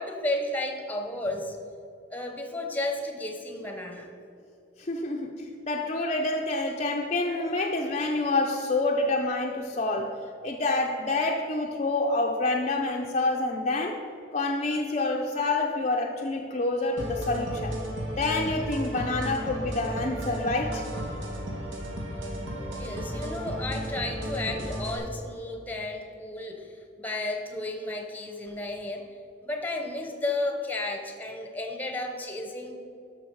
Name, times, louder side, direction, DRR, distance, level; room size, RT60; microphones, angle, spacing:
voice 1, 0.0-1.6 2.1-4.1 22.7-29.1 29.4-32.8, left 2 dB, 10° left, 3 dB, 0.9 m, -33 dB
voice 2, 4.8-14.0 14.3-17.8 18.2-20.8, left 2 dB, 35° left, 1 dB, 0.5 m, -27 dB
sound 1, 17.0-25.0, equal, 75° right, 1.6 m, -34 dB
12.5 x 5.9 x 4.6 m, 2.6 s
head